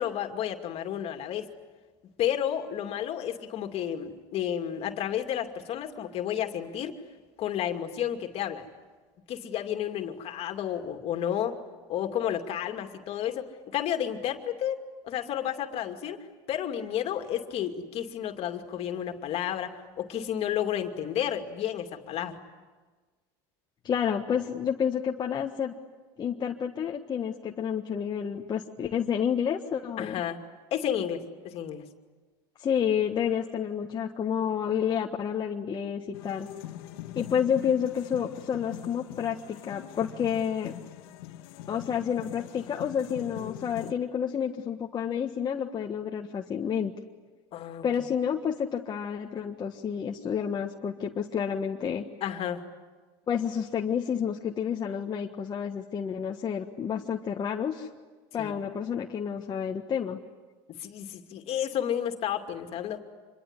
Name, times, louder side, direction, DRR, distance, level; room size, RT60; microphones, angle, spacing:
voice 1, 0.0-1.5 2.2-7.0 7.4-8.7 9.3-11.6 11.9-14.8 15.0-16.2 16.5-22.4 30.0-30.4 30.7-31.8 43.8-43.9 47.5-47.8 52.2-52.6 58.4-58.6 60.8-63.0, left 10 dB, 55° left, 5 dB, 2.6 m, -31 dB
voice 2, 23.8-25.7 26.2-30.2 32.6-36.5 37.1-40.7 41.7-46.9 47.8-52.0 53.3-57.9 58.3-60.2, left 8 dB, 35° left, 1 dB, 1.5 m, -29 dB
sound 1, 36.1-43.9, left 13 dB, 85° left, 1.4 m, -43 dB
27.0 x 22.5 x 9.9 m, 1.3 s
supercardioid pair, 100°, 12 cm